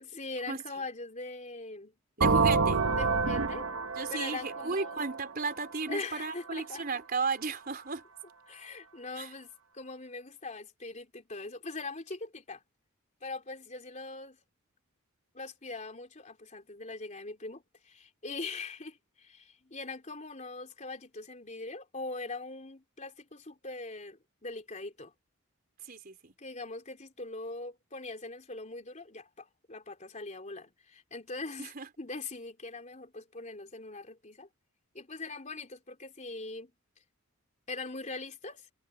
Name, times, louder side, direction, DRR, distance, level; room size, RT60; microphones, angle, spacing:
voice 1, 0.2-1.9 2.9-3.7 4.1-5.0 5.9-6.8 8.5-12.6 13.2-14.4 15.3-25.1 26.4-31.7 32.0-34.5 34.9-36.7 37.7-38.7, left 3 dB, 35° left, 3.6 m, -41 dB
voice 2, 2.2-2.8 3.9-8.0 9.2-9.3 25.8-26.3 31.6-31.9, right 4 dB, 45° right, 3.9 m, -34 dB
sound 1, 2.2-5.9, right 4 dB, 70° right, 1.1 m, -28 dB
head